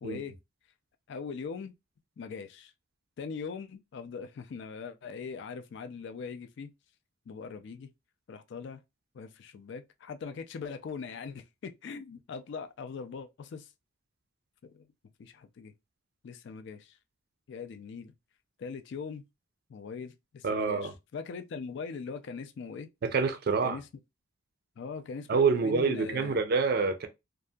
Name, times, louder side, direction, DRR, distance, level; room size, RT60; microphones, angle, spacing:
voice 1, 0.0-0.4 1.1-1.7 2.2-2.7 3.2-6.7 7.3-7.9 8.3-8.8 9.1-13.7 14.6-14.9 15.2-15.7 16.2-17.0 17.5-18.1 18.6-19.2 19.7-22.9 23.6-23.9 24.8-26.4, left 5 dB, 55° left, 0.3 m, -41 dB
voice 2, 20.4-20.9 23.0-23.8 25.3-27.1, right 4 dB, 45° right, 0.4 m, -27 dB
2.7 x 2.4 x 2.2 m
head